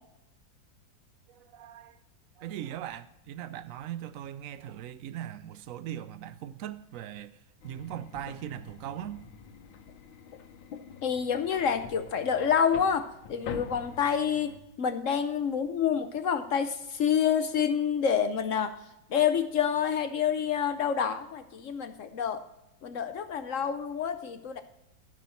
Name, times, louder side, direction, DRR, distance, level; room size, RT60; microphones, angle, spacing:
voice 1, 1.3-2.0 2.4-7.4 7.6-9.2, right 11 dB, 75° right, 0.7 m, -40 dB
sound 1, 7.6-14.6, left 6 dB, 85° left, 1.6 m, -45 dB
voice 2, 11.0-18.7 19.1-22.4 22.8-24.6, left 7 dB, 65° left, 0.8 m, -28 dB
14.5 x 6.2 x 4.2 m
omnidirectional pair, 2.0 m